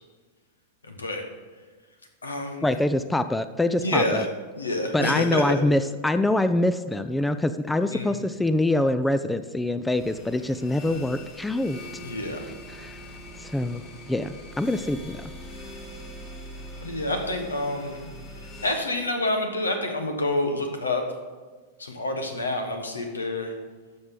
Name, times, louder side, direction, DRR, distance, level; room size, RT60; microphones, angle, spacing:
voice 1, 0.8-1.2 2.2-2.8 3.8-4.3 4.6-5.6 7.9-8.1 12.0-12.4 16.8-18.1 18.6-21.0 21.8-23.5, left 2 dB, 85° left, 5 dB, 1.3 m, -28 dB
voice 2, 2.6-4.2 4.9-11.8 12.7-13.0 13.4-13.8 14.1-15.3, left 1 dB, 5° left, 12 dB, 0.4 m, -25 dB
sound 1, 9.9-18.7, equal, 35° left, 2.6 m, -42 dB
12.0 x 6.5 x 3.8 m, 1.4 s
hypercardioid pair, 100°, 0 cm